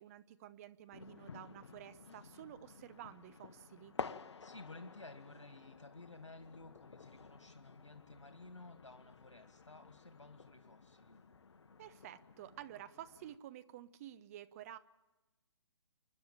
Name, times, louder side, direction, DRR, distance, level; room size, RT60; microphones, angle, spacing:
voice 1, 0.0-3.9 11.8-14.8, right 12 dB, 30° right, 12 dB, 0.8 m, -51 dB
sound 1, 0.9-13.4, left 5 dB, 70° left, 1.0 m, -52 dB
voice 2, 4.4-11.2, left 3 dB, 85° left, 7 dB, 2.0 m, -54 dB
29.0 x 11.0 x 8.9 m, 1.1 s
figure-of-eight pair, 135°, 15 cm